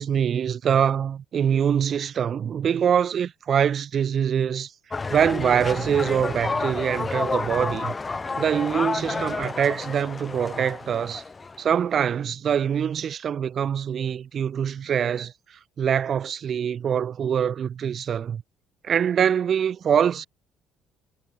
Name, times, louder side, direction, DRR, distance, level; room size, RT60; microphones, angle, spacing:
voice 1, 0.0-4.7 5.1-7.9 8.4-11.2 11.6-15.3 15.8-18.4 18.8-20.3, right 8 dB, 50° right, 1.4 m, -24 dB
sound 1, 4.9-11.7, left 4 dB, 30° left, 1.8 m, -30 dB
hypercardioid pair, 60°, 0 cm